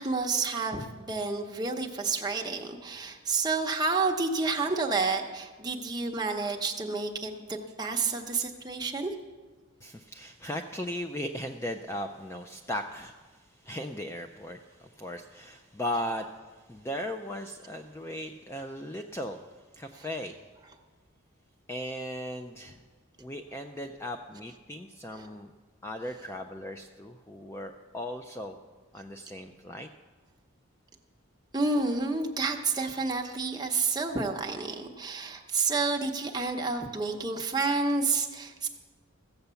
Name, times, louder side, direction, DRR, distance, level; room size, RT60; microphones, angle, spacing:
voice 1, 0.0-9.1 25.1-25.3 31.5-38.7, right 4 dB, 20° right, 2 dB, 0.9 m, -30 dB
voice 2, 9.8-16.3 16.7-19.4 19.8-20.4 21.7-22.8 23.2-25.5 25.8-28.6 28.9-29.9, left 1 dB, 10° left, 5 dB, 0.4 m, -37 dB
15.0 x 7.9 x 6.9 m, 1.4 s
head